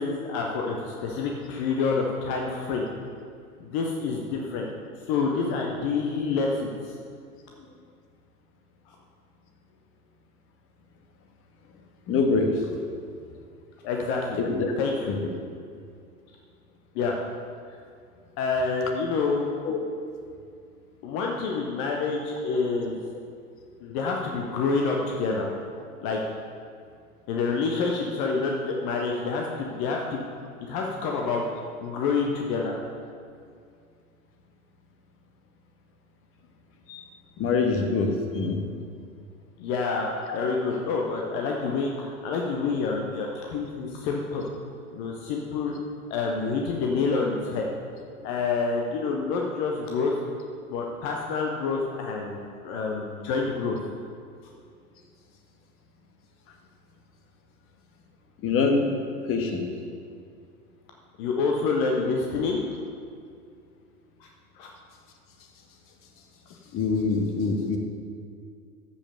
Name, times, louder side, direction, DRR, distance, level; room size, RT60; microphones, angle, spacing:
voice 1, 0.0-2.9 3.6-4.7 5.1-6.7 13.8-14.4 14.8-15.1 16.9-17.2 18.4-19.5 21.0-23.0 23.8-25.5 26.0-26.2 27.3-30.2 30.6-31.4 31.8-32.8 39.6-44.4 44.9-45.7 46.1-47.6 48.2-50.2 50.7-53.8 61.2-62.7 64.6-64.7, left 4 dB, 15° left, 0 dB, 0.3 m, -27 dB
voice 2, 12.1-12.5 14.4-14.7 15.1-15.2 19.6-19.8 36.9-37.1 37.4-38.6 58.4-58.9 59.3-59.6 66.7-67.8, left 4 dB, 30° left, 3 dB, 1.5 m, -24 dB
13.5 x 5.3 x 6.6 m, 2.3 s
figure-of-eight pair, 95°, 44 cm